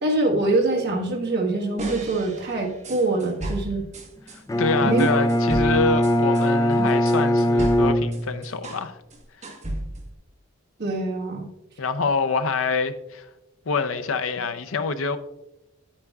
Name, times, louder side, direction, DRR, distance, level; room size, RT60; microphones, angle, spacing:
voice 1, 0.0-3.8 4.8-5.1 10.8-11.5, right 2 dB, 55° right, 1.4 m, -24 dB
sound 1, 1.8-4.4 5.0-8.9 9.1-10.1, right 1 dB, 35° right, 1.4 m, -34 dB
voice 2, 4.3-9.0 11.8-13.3 13.7-15.2, left 4 dB, 75° left, 0.6 m, -26 dB
Bowed string instrument, 4.5-8.7, equal, 15° left, 0.4 m, -21 dB
9.4 x 8.7 x 2.4 m
head